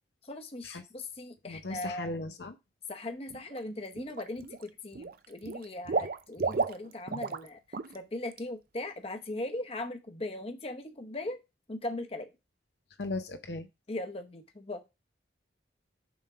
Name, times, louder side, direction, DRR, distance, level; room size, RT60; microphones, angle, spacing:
voice 1, 0.2-2.1 2.9-11.4 11.7-12.3 13.9-14.9, left 2 dB, 35° left, 5 dB, 0.9 m, -39 dB
voice 2, 1.5-2.6 13.0-13.7, left 2 dB, 65° left, 7 dB, 0.7 m, -37 dB
Water / Liquid, 3.3-3.6 4.0-4.6 4.9-7.5 7.7-8.0 8.3-8.4, right 4 dB, 50° right, 0.5 m, -33 dB
7.1 x 3.6 x 5.5 m, 0.24 s
head